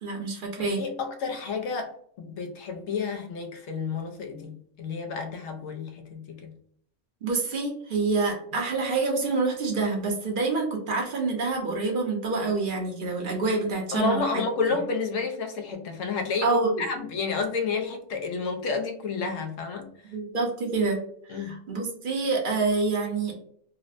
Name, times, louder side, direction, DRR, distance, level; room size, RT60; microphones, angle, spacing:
voice 1, 0.0-0.8 7.2-14.4 16.4-16.8 20.1-23.4, right 3 dB, 50° right, 1 dB, 0.8 m, -27 dB
voice 2, 0.6-6.5 13.9-19.9 21.3-21.6, left 4 dB, 85° left, 4 dB, 1.0 m, -30 dB
4.1 x 2.0 x 2.5 m, 0.63 s
omnidirectional pair, 1.3 m